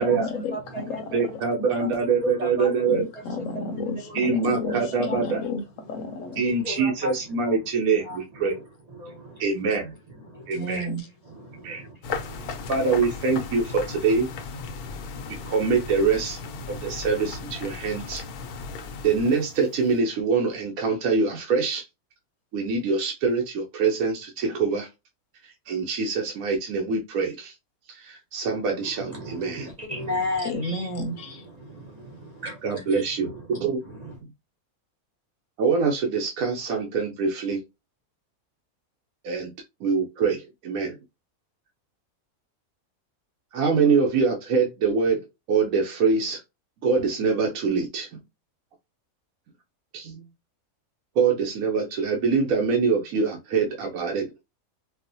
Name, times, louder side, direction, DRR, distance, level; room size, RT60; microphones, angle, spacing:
voice 1, 0.0-1.4 2.9-6.4 10.5-11.1 30.4-31.5, left 2 dB, 65° left, 0.9 m, -32 dB
voice 2, 0.5-1.4 1.6-2.9 3.5-5.2 6.1-7.2 8.0-9.4 10.2-10.9 11.3-13.0 14.6-15.6 16.6-17.1 28.8-34.1, left 1 dB, 45° right, 0.5 m, -37 dB
voice 3, 1.1-3.0 4.1-5.4 6.4-8.6 9.4-9.9 10.5-10.9 11.6-11.8 12.7-14.3 15.4-16.4 16.7-18.2 19.0-21.9 22.5-24.9 25.4-27.5 27.9-29.7 32.6-33.8 35.6-37.6 39.2-39.5 39.8-41.0 43.5-45.2 45.5-46.4 46.8-48.2 49.9-50.3 51.2-54.3, right 5 dB, 70° right, 1.1 m, -24 dB
sound 1, 12.0-20.0, left 4 dB, 90° left, 1.1 m, -36 dB
4.4 x 2.1 x 2.5 m
omnidirectional pair, 1.6 m